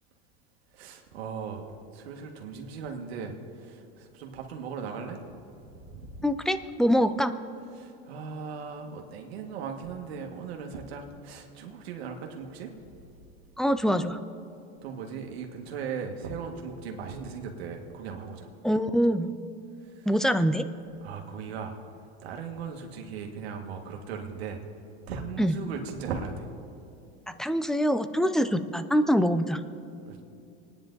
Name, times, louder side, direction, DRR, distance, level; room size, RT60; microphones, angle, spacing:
voice 1, 0.7-1.7 1.9-5.2 5.8-6.3 7.7-12.7 14.8-18.5 20.0-20.1 21.0-21.7 22.2-24.6 25.1-26.5 30.1-30.2, right 6 dB, 90° right, 3 dB, 1.8 m, -38 dB
voice 2, 6.2-7.3 13.6-14.2 18.6-19.3 20.1-20.7 25.4-25.6 27.3-29.6, equal, ahead, 11 dB, 0.5 m, -24 dB
26.5 x 10.0 x 4.0 m, 2.7 s
supercardioid pair, 120°, 30 cm